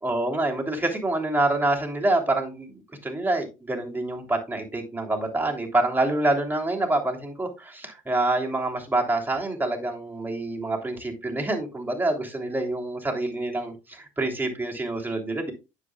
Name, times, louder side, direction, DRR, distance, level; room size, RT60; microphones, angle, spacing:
voice 1, 0.0-15.5, right 2 dB, 10° right, 1 dB, 3.1 m, -26 dB
9.7 x 7.6 x 2.3 m, 0.27 s
hypercardioid pair, 70°, 18 cm